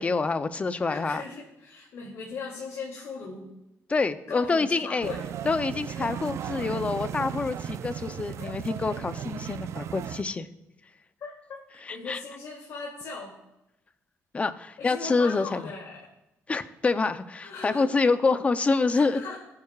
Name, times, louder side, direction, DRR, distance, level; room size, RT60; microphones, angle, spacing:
voice 1, 0.0-1.2 3.9-5.1 5.4-10.5 11.8-12.2 14.3-15.6 16.5-19.2, left 4 dB, 25° left, 11 dB, 0.6 m, -26 dB
voice 2, 0.9-3.5 4.3-5.2 8.3-8.6 11.2-13.4 14.8-16.0 17.4-18.0 18.9-19.4, left 4 dB, 70° left, -3 dB, 2.5 m, -39 dB
sound 1, 5.0-10.2, right 9 dB, 60° right, 0.4 m, -36 dB
18.5 x 9.6 x 2.4 m, 0.91 s
cardioid pair, 140°, 5 cm